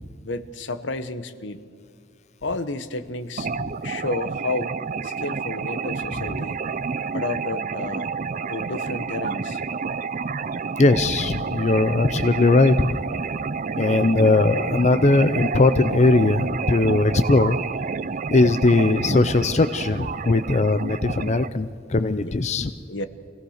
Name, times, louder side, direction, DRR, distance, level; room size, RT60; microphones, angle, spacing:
voice 1, 0.2-1.7 2.4-3.5 3.8-4.7 5.0-6.6 7.1-8.1 8.5-9.6 22.2-22.4 22.9-23.1, left 3 dB, 70° left, 12 dB, 1.1 m, -31 dB
sound 1, 3.4-21.5, right 5 dB, 45° right, 0.5 m, -29 dB
voice 2, 10.8-13.0 13.8-17.6 18.3-22.7, left 2 dB, 35° left, 11 dB, 0.5 m, -19 dB
25.5 x 17.5 x 6.5 m, 2.2 s
head